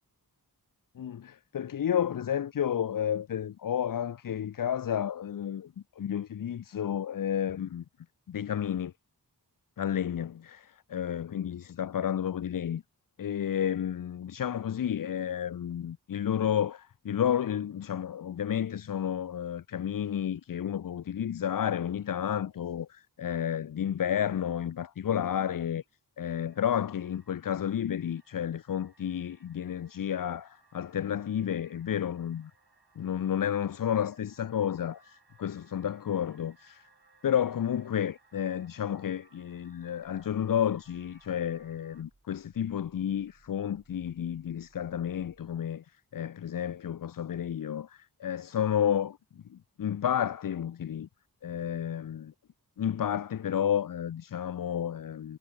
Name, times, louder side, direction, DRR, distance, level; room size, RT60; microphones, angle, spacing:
voice 1, 1.0-7.8 8.3-8.9 9.8-12.8 13.2-25.8 26.2-32.5 33.0-36.9 37.2-49.2 49.5-51.1 51.4-52.3 52.8-55.4, left 9 dB, 60° left, 0.4 m, -31 dB
sound 1, 26.3-42.0, right 4 dB, 75° right, 3.3 m, -65 dB
Growling, 41.8-45.7, right 2 dB, 40° right, 3.2 m, -66 dB
wide cardioid pair, 55°, 39 cm